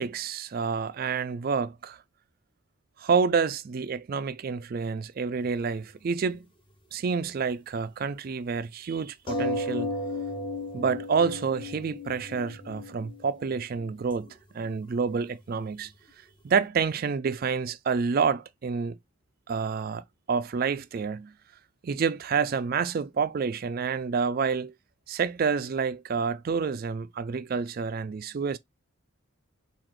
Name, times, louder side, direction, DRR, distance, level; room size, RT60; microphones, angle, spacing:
voice 1, 0.0-2.0 3.0-6.5 6.9-9.9 10.7-14.3 14.5-15.9 16.4-19.0 19.5-21.3 21.8-24.7 25.1-28.6, right 5 dB, 45° right, 0.3 m, -28 dB
sound 1, 5.4-5.5 5.8-6.0 9.3-14.3 14.6-14.7 15.0-15.1 15.4-15.5 15.9-16.0, left 2 dB, 20° left, 0.7 m, -35 dB
3.9 x 2.5 x 3.1 m
head